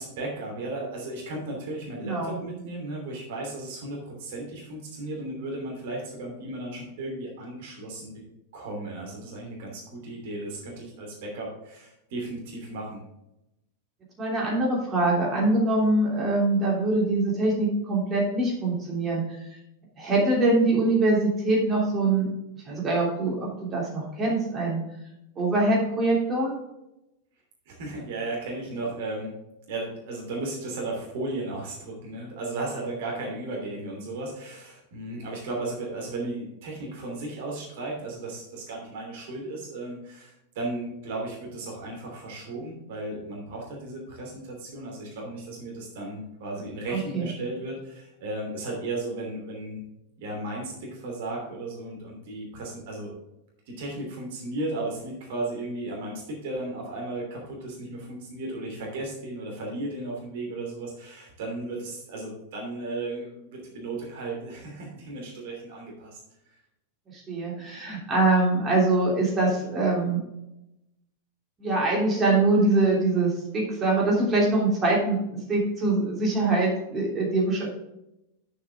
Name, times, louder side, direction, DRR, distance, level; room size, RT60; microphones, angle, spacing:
voice 1, 0.0-8.1 8.5-13.0 27.7-29.3 29.7-49.8 50.2-53.2 53.7-66.2, right 2 dB, 50° right, -1 dB, 2.9 m, -35 dB
voice 2, 2.0-2.4 14.2-19.2 20.0-22.3 22.7-24.8 25.4-26.5 46.9-47.3 67.1-70.2 71.6-75.2 75.5-77.7, right 2 dB, 25° right, -3 dB, 3.1 m, -23 dB
9.0 x 7.2 x 3.6 m, 0.88 s
figure-of-eight pair, 90°, 0 cm